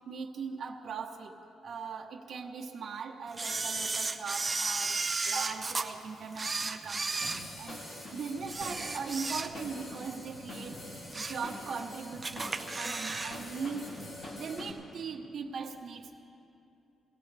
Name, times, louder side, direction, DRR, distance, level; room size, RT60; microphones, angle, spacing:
voice 1, 0.1-1.4 1.6-7.8 8.1-10.8 11.1-13.9 14.3-16.2, right 5 dB, 55° right, -1 dB, 1.0 m, -40 dB
Camera, 3.4-5.9 6.3-8.0 8.4-9.8 10.2-10.3 10.8-11.5 11.8-11.9 12.2-13.4 13.6-13.7, right 3 dB, 25° right, 0.7 m, -34 dB
sound 1, 7.2-14.7, left 1 dB, 45° left, 2.8 m, -44 dB
20.5 x 17.5 x 3.4 m, 2.8 s
cardioid pair, 110°, 0 cm